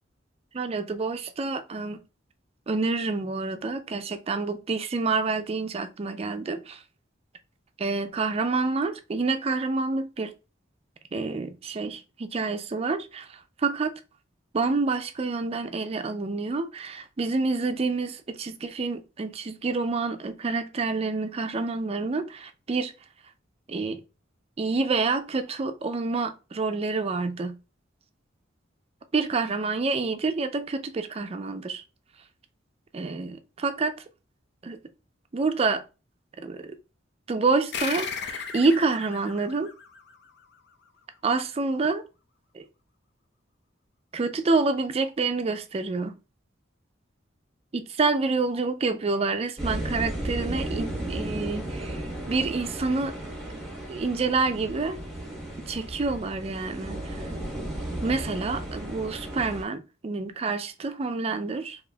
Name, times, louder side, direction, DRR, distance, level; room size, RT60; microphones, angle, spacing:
voice 1, 0.5-2.0 2.7-6.8 7.8-10.3 11.1-13.9 14.5-22.9 23.7-24.0 24.6-27.5 29.1-31.8 32.9-33.9 34.6-34.8 35.3-35.8 36.4-36.8 37.3-39.7 41.2-42.0 42.5-42.6 44.1-46.1 47.7-53.1 53.9-55.0 55.7-57.3 58.0-61.8, right 3 dB, 30° right, 0.4 m, -28 dB
sound 1, 37.7-40.7, left 6 dB, 60° left, 0.5 m, -36 dB
sound 2, 49.6-59.6, right 1 dB, ahead, 1.2 m, -34 dB
4.1 x 2.8 x 2.2 m
head